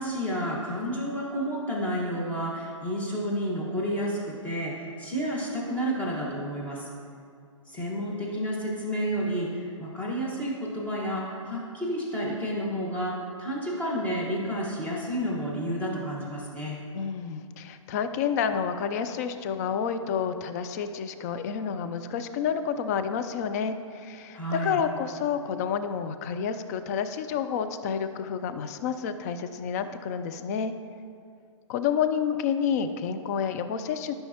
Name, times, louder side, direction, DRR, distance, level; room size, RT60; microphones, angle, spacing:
voice 1, 0.0-6.9 7.7-16.8 24.3-24.8, equal, 10° left, -5 dB, 1.5 m, -30 dB
voice 2, 16.9-30.7 31.7-34.1, left 7 dB, 30° left, 9 dB, 0.4 m, -29 dB
12.0 x 5.6 x 2.9 m, 2.3 s
figure-of-eight pair, 120°, 17 cm